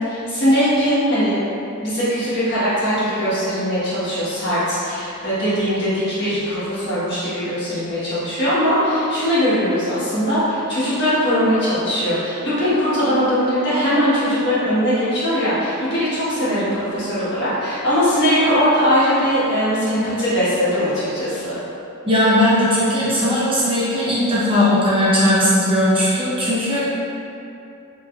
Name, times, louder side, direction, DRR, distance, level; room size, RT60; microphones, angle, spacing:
voice 1, 0.0-1.4 1.8-21.6, equal, 55° left, -12 dB, 1.3 m, -20 dB
voice 2, 22.1-26.8, left 1 dB, 25° right, -9 dB, 0.7 m, -18 dB
3.3 x 3.1 x 2.3 m, 2.7 s
head